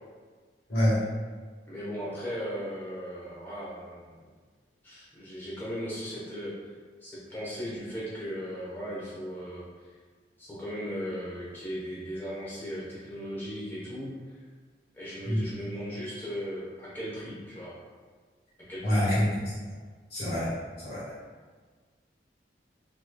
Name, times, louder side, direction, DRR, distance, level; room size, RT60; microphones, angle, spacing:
voice 1, 0.7-1.0 15.2-15.4 18.8-19.2 20.1-20.5 20.8-21.0, equal, 60° left, -12 dB, 1.5 m, -25 dB
voice 2, 1.7-4.3 4.8-6.5 7.0-9.6 10.4-14.1 14.9-17.8 18.7-19.0, equal, 10° left, -8 dB, 0.9 m, -37 dB
3.3 x 3.0 x 2.2 m, 1.5 s
head